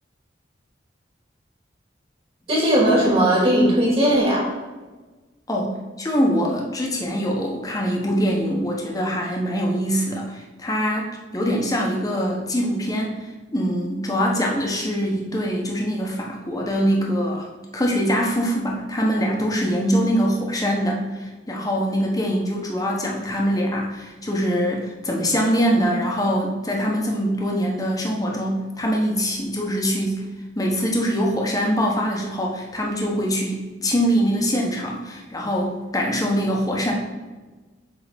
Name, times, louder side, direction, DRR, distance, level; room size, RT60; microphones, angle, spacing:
voice 1, 2.5-4.5, right 1 dB, 30° right, -3 dB, 2.4 m, -18 dB
voice 2, 5.5-17.5 17.7-30.2 30.5-36.9, equal, 20° left, -1 dB, 1.3 m, -23 dB
8.4 x 3.9 x 5.3 m, 1.2 s
head